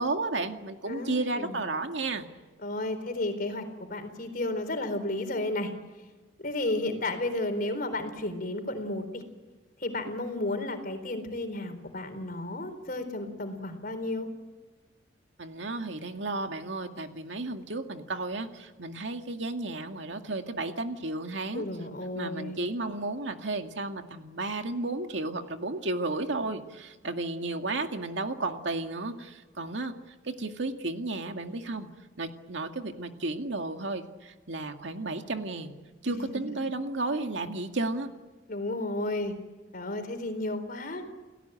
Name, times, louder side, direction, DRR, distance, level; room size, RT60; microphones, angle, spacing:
voice 1, 0.0-2.3 15.4-21.6 22.2-29.9 30.2-31.9 32.2-35.7 36.0-38.1, right 2 dB, 75° right, 5 dB, 2.1 m, -33 dB
voice 2, 0.9-1.6 2.6-5.7 6.4-9.2 9.8-14.3 21.5-22.6 36.0-36.4 38.5-39.4 39.7-41.0, left 2 dB, 50° left, 8 dB, 4.1 m, -33 dB
29.0 x 17.5 x 9.0 m, 1.3 s
head